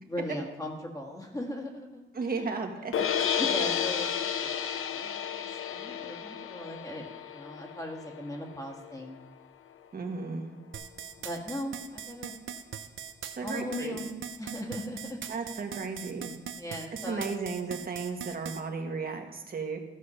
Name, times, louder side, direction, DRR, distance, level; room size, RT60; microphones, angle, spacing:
voice 1, 0.1-2.0 2.3-2.6 3.4-9.2 11.2-12.3 13.4-14.1 14.4-15.2 16.5-17.3, left 1 dB, 15° left, 1 dB, 1.7 m, -38 dB
voice 2, 2.1-3.0 9.9-10.5 13.2-14.0 15.3-16.3 17.0-19.8, right 4 dB, 45° right, 4 dB, 1.4 m, -34 dB
sound 1, 2.9-9.1, left 8 dB, 90° left, 0.7 m, -32 dB
sound 2, 10.7-18.6, right 7 dB, 75° right, 0.7 m, -40 dB
14.0 x 6.4 x 5.6 m, 1.0 s
wide cardioid pair, 140°, 21 cm